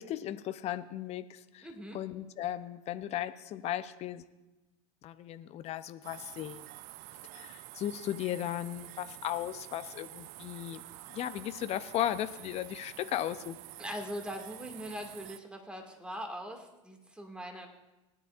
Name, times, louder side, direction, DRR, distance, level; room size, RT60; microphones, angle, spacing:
voice 1, 0.0-1.7 1.9-4.2 5.0-6.6 7.3-10.8 11.1-13.6, left 12 dB, 40° left, 12 dB, 0.6 m, -36 dB
voice 2, 1.6-2.0 13.8-17.7, equal, 5° right, 3 dB, 2.1 m, -41 dB
sound 1, 6.0-15.4, right 17 dB, 50° right, 0.4 m, -49 dB
19.0 x 10.0 x 2.5 m, 1.1 s
hypercardioid pair, 85°, 17 cm